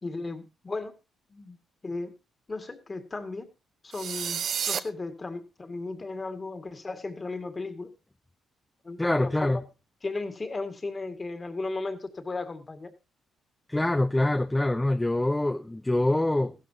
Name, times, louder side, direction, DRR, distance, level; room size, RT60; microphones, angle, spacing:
voice 1, 0.0-0.9 1.3-1.6 1.8-2.1 2.5-3.5 3.8-7.9 8.8-9.6 10.0-12.9, left 3 dB, 25° left, 2.1 m, -35 dB
sound 1, 3.9-4.8, right 8 dB, 60° right, 0.8 m, -30 dB
voice 2, 9.0-9.6 13.7-16.5, left 1 dB, 10° left, 0.6 m, -25 dB
15.0 x 12.5 x 2.8 m
cardioid pair, 90°, 0 cm